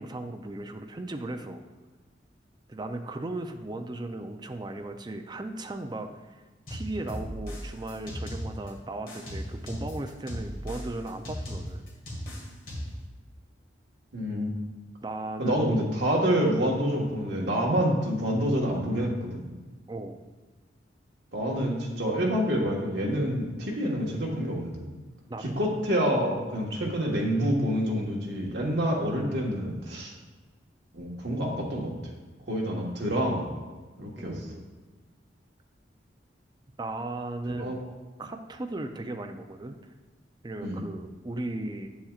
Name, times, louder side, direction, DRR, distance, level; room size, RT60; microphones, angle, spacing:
voice 1, 0.0-1.6 2.7-6.1 6.7-11.8 15.0-15.7 16.3-16.4 19.9-20.2 25.3-25.6 34.2-34.7 36.8-37.8 38.2-39.8 40.4-41.9, right 2 dB, 25° right, 6 dB, 0.5 m, -36 dB
sound 1, 6.7-8.7 9.1-13.1, equal, 50° left, 2.0 m, -37 dB
voice 2, 14.1-14.5 15.4-19.5 21.3-24.9 25.4-30.1 30.9-31.9 32.5-33.5 34.0-34.4 37.6-37.9 40.6-40.8, equal, 65° right, -1 dB, 1.5 m, -27 dB
9.0 x 7.1 x 2.4 m, 1.3 s
head